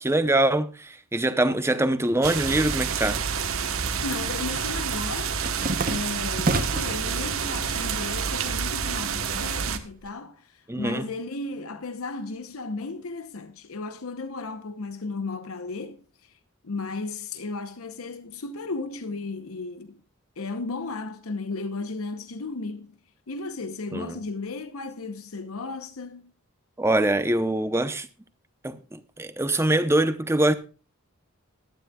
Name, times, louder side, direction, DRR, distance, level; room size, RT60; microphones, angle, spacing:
voice 1, 0.0-3.2 10.7-11.1 23.9-24.2 26.8-28.1 28.6-30.5, right 1 dB, 10° right, 0.7 m, -23 dB
sound 1, 2.2-9.8, right 6 dB, 70° right, 1.1 m, -28 dB
sound 2, 3.6-3.9 4.2-7.0 7.5-8.1 8.4-10.1, right 3 dB, 40° right, 0.8 m, -31 dB
voice 2, 4.0-5.4 5.9-16.3 16.6-20.0 20.4-23.0 23.3-26.3, left 3 dB, 75° left, 0.8 m, -35 dB
17.5 x 11.5 x 2.3 m
head